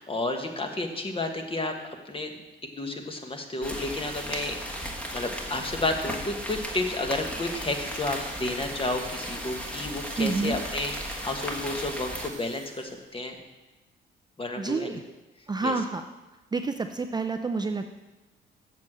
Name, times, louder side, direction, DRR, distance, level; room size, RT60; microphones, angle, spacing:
voice 1, 0.0-2.4 2.7-13.4 14.4-15.0 15.6-15.7, left 2 dB, 25° left, 4 dB, 1.5 m, -31 dB
sound 1, 3.6-12.3, equal, 5° left, 1.5 m, -36 dB
sound 2, 7.4-13.2, right 6 dB, 85° right, 1.2 m, -47 dB
voice 2, 10.2-10.6 14.6-15.0 15.5-16.0 16.5-17.9, right 4 dB, 20° right, 6 dB, 0.5 m, -28 dB
7.5 x 6.6 x 7.4 m, 1.1 s
cardioid pair, 90°, 20 cm